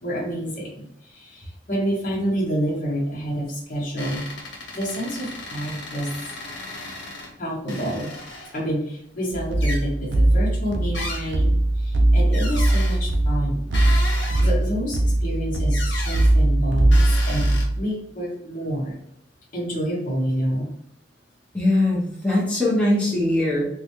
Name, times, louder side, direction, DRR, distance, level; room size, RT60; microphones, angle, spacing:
voice 1, 0.0-4.4 4.7-6.1 7.4-8.1 8.5-13.6 14.4-19.0 19.5-20.7, equal, 50° left, -3 dB, 1.1 m, -28 dB
sound 1, 4.0-7.3 7.7-8.7 9.6-9.8 10.9-11.5 12.3-13.0 13.7-14.6 15.7-16.3 16.9-17.6, left 2 dB, 85° left, 1.0 m, -35 dB
sound 2, 9.3-17.8, right 1 dB, 85° right, 0.5 m, -20 dB
voice 2, 21.5-23.7, left 1 dB, 5° left, -6 dB, 0.8 m, -21 dB
3.7 x 2.2 x 3.0 m, 0.74 s
head